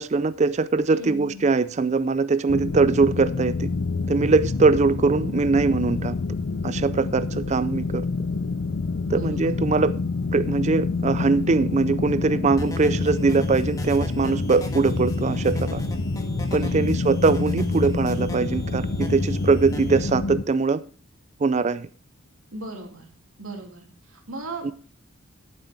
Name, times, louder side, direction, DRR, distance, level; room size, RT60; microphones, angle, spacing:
voice 1, 0.0-3.7 4.1-6.2 6.6-8.0 9.1-9.9 10.3-15.8 16.5-20.8 21.4-21.9 24.6-24.7, right 4 dB, 35° right, 0.4 m, -22 dB
voice 2, 0.9-1.4 9.1-9.5 16.6-17.0 22.5-23.1 23.4-24.7, right 2 dB, 85° right, 2.7 m, -37 dB
sound 1, 2.5-20.4, left 4 dB, 60° left, 0.6 m, -28 dB
sound 2, 12.6-20.1, equal, 15° left, 1.5 m, -32 dB
13.0 x 7.6 x 4.4 m
head